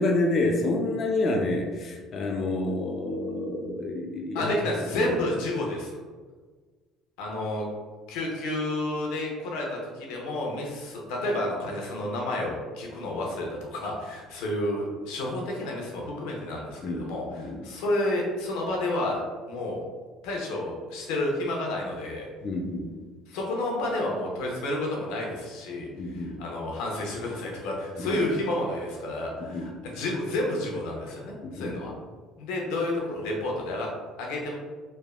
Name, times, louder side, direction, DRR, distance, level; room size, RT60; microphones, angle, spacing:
voice 1, 0.0-4.5 4.9-5.1 16.8-17.6 22.4-22.9 26.0-26.4 28.0-28.2 29.4-29.7 31.4-32.0, left 2 dB, 45° left, 2 dB, 0.4 m, -29 dB
voice 2, 4.3-6.0 7.2-7.7 8.1-19.2 19.5-19.8 20.2-22.3 23.3-31.9 32.4-33.9 34.2-34.6, left 1 dB, 90° left, -1 dB, 0.7 m, -30 dB
3.3 x 2.1 x 2.3 m, 1.4 s
cardioid pair, 105°, 0 cm